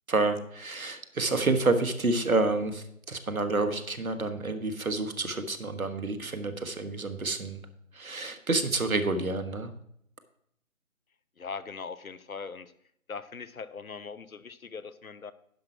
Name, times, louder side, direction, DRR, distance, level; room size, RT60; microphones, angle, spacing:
voice 1, 0.1-7.6 7.9-9.7, right 3 dB, 70° right, 9 dB, 1.4 m, -29 dB
voice 2, 11.4-12.7 13.1-15.3, left 5 dB, 70° left, 15 dB, 0.8 m, -40 dB
10.5 x 6.1 x 4.8 m, 0.71 s
figure-of-eight pair, 165°, 43 cm